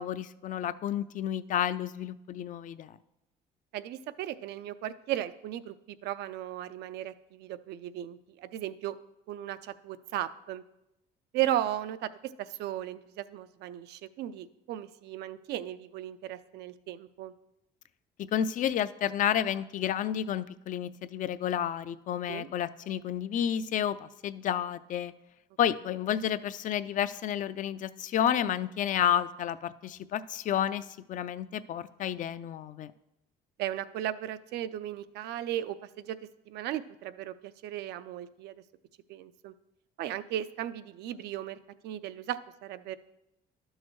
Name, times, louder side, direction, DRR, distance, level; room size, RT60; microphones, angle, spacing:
voice 1, 0.0-2.9 18.2-25.1 25.6-32.9, left 10 dB, 50° left, 14 dB, 0.4 m, -31 dB
voice 2, 3.7-9.0 9.3-10.6 11.3-17.3 22.3-22.5 33.6-36.2 36.5-38.5 39.1-39.5 40.0-41.6 41.8-43.0, right 12 dB, 80° right, 13 dB, 0.4 m, -36 dB
11.5 x 6.4 x 3.1 m, 0.90 s
cardioid pair, 110°, 17 cm